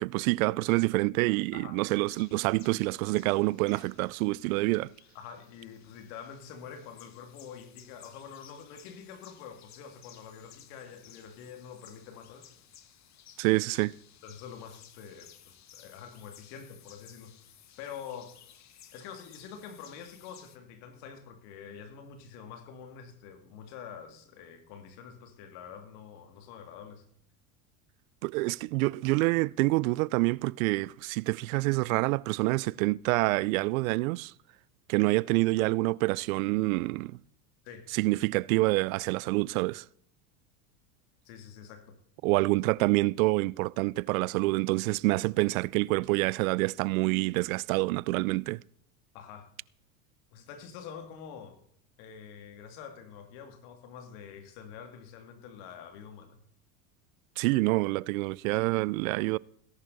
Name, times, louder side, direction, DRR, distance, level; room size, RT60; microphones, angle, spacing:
voice 1, 0.0-4.9 13.4-13.9 28.2-34.3 34.9-37.2 37.9-39.8 42.2-48.6 57.4-59.4, right 22 dB, 70° right, 0.6 m, -27 dB
sound 1, 2.0-20.6, left 10 dB, 40° left, 1.6 m, -57 dB
voice 2, 5.1-12.5 14.2-17.3 17.8-18.3 18.9-27.0 37.6-37.9 41.2-41.9 49.1-49.5 50.3-51.6 52.0-56.4, left 7 dB, 65° left, 2.6 m, -46 dB
18.0 x 11.0 x 4.1 m
hypercardioid pair, 95°, 43 cm